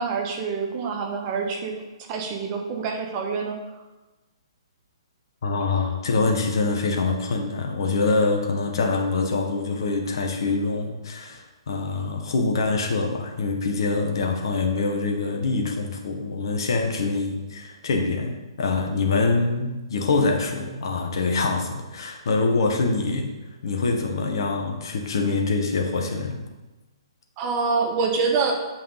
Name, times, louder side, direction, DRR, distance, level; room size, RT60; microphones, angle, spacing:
voice 1, 0.0-1.7 2.1-3.5 27.4-28.5, right 4 dB, 30° right, 2 dB, 1.4 m, -26 dB
voice 2, 5.4-23.3 23.6-26.4, left 3 dB, 55° left, 2 dB, 1.5 m, -25 dB
7.7 x 5.5 x 5.1 m, 1.1 s
figure-of-eight pair, 125°, 3 cm